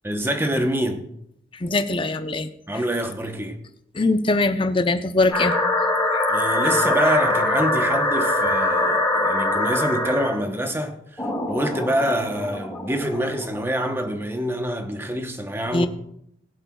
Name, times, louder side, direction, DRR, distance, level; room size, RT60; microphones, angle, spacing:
voice 1, 0.0-1.1 2.7-3.6 6.3-15.9, equal, 15° right, 0.9 m, -26 dB
voice 2, 1.6-2.5 3.9-5.5 6.1-6.2 15.7-15.9, left 2 dB, 30° left, 0.7 m, -21 dB
sound 1, 5.3-10.4 11.2-13.6, left 2 dB, 10° left, 4.0 m, -23 dB
21.5 x 7.9 x 2.3 m
head